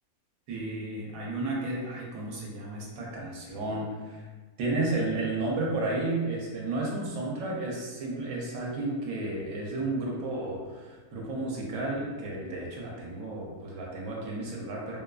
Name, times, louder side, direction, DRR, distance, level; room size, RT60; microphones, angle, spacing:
voice 1, 0.5-4.3 4.6-15.0, right 2 dB, 75° right, -3 dB, 1.0 m, -32 dB
2.6 x 2.3 x 2.2 m, 1.3 s
omnidirectional pair, 1.5 m